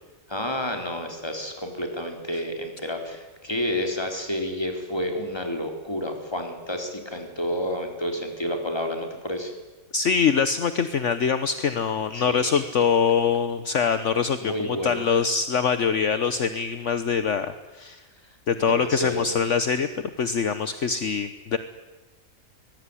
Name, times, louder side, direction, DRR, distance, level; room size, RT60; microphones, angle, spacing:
voice 1, 0.3-9.5 12.1-12.7 14.4-15.1 18.2-18.3 18.6-19.4, left 1 dB, 20° left, 4 dB, 4.0 m, -30 dB
voice 2, 9.9-18.0 18.5-19.9 20.2-21.6, left 6 dB, 60° left, 11 dB, 1.4 m, -24 dB
24.5 x 20.5 x 9.9 m, 1.2 s
omnidirectional pair, 1.4 m